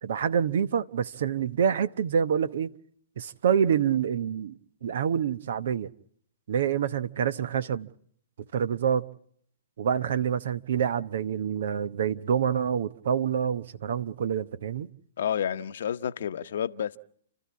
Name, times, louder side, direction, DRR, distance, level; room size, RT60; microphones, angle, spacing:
voice 1, 0.0-2.7 3.2-5.9 6.5-7.9 8.5-9.0 9.8-14.9, right 8 dB, 65° right, 1.0 m, -27 dB
voice 2, 15.2-17.0, left 9 dB, 65° left, 0.9 m, -30 dB
30.0 x 13.5 x 8.5 m
hypercardioid pair, 120°, 0 cm